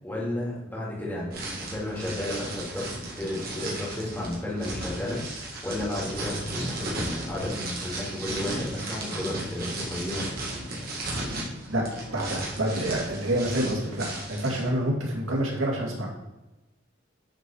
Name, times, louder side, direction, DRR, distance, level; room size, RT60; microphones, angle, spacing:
voice 1, 0.0-10.2, left 1 dB, 10° left, -6 dB, 2.9 m, -33 dB
sound 1, 1.3-14.7, right 1 dB, 50° right, 2.2 m, -35 dB
voice 2, 12.1-16.2, right 1 dB, 90° right, -2 dB, 2.6 m, -27 dB
10.0 x 4.7 x 4.7 m, 1.0 s
head